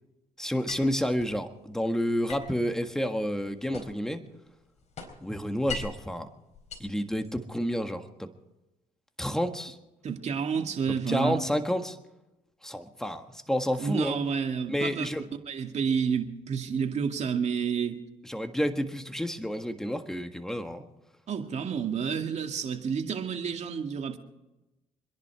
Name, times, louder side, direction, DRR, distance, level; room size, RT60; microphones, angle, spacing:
voice 1, 0.4-4.2 5.2-6.3 6.8-8.3 9.2-9.8 11.1-12.0 12.6-14.2 14.7-15.2 18.2-20.8, equal, 5° left, 1.6 m, -30 dB
sound 1, 0.7-1.4 2.3-4.1 4.5-6.1 6.5-7.6, left 5 dB, 50° left, 4.0 m, -42 dB
voice 2, 10.0-11.4 13.8-15.1 15.5-18.0 21.3-24.2, right 6 dB, 50° right, 2.2 m, -30 dB
26.5 x 11.0 x 4.7 m
cardioid pair, 85°, 15 cm